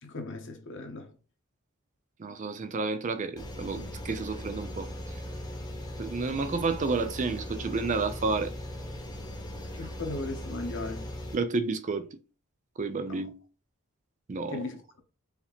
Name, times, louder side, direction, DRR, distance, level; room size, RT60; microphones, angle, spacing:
voice 1, 0.0-1.1 9.7-11.1 13.0-13.2 14.5-14.7, left 2 dB, 60° left, 1.0 m, -37 dB
voice 2, 2.2-4.9 6.0-8.5 11.3-12.2 12.8-13.4 14.3-14.6, right 4 dB, 35° right, 0.4 m, -30 dB
sound 1, 3.4-11.4, equal, 20° left, 1.0 m, -39 dB
4.7 x 2.8 x 3.5 m
head